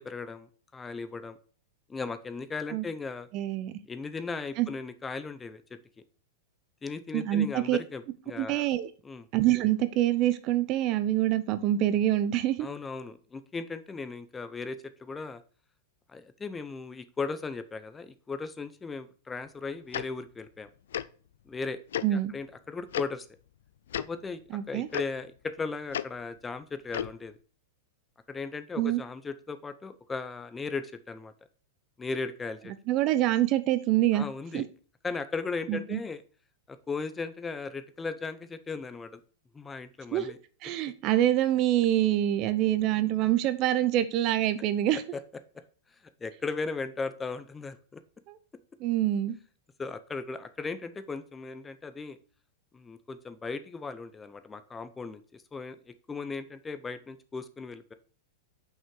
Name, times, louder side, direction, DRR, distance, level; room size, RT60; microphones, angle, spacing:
voice 1, 0.0-1.4 1.9-3.3 3.9-5.6 6.8-8.7 9.0-9.3 12.6-15.4 16.1-20.7 21.5-21.8 22.1-23.3 23.9-27.4 28.3-31.3 32.0-32.7 34.1-34.7 35.0-36.2 36.7-39.2 39.5-40.4 45.1-45.2 46.2-48.0 49.8-52.2 52.7-57.9, left 4 dB, 15° left, 12 dB, 0.6 m, -37 dB
voice 2, 3.3-3.7 4.6-4.7 7.1-7.8 8.4-8.9 9.3-12.7 22.0-22.3 24.5-24.9 28.8-29.0 32.9-34.3 34.5-34.6 35.7-36.0 40.1-40.3 40.6-45.0 48.3-48.4 48.8-49.4, right 13 dB, 45° right, 13 dB, 0.7 m, -26 dB
Tick-tock, 19.9-20.0 20.9-21.1 21.9-22.1 22.9-23.0 23.9-24.1 24.9-25.0 25.9-26.0 26.9-27.1, left 10 dB, 80° left, 0.4 m, -31 dB
5.7 x 5.6 x 4.7 m, 0.40 s
hypercardioid pair, 125°, 0 cm